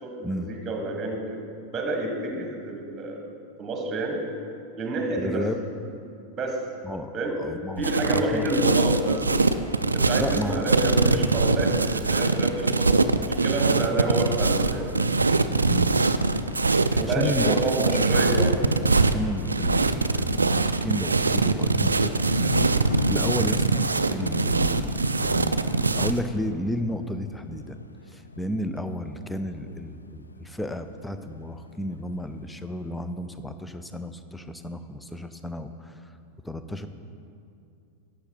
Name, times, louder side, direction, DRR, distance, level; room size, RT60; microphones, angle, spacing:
voice 1, 0.0-1.4 1.7-3.2 3.6-4.2 4.8-5.5 6.4-6.6 7.1-7.4 7.8-9.6 9.9-14.9 16.9-18.6, right 2 dB, 20° right, 2 dB, 1.4 m, -29 dB
voice 2, 5.2-5.6 6.8-7.1 7.4-8.7 10.2-10.7 15.7-16.0 17.0-18.3 18.6-22.1 22.4-27.8 28.1-35.9 36.4-36.9, left 1 dB, 5° left, 10 dB, 0.5 m, -33 dB
sound 1, 7.8-26.2, right 3 dB, 80° right, 0.3 m, -23 dB
Thunder, 22.2-31.8 32.1-32.8, left 2 dB, 80° left, 0.3 m, -37 dB
11.5 x 7.5 x 4.4 m, 2.5 s
figure-of-eight pair, 90°, 0 cm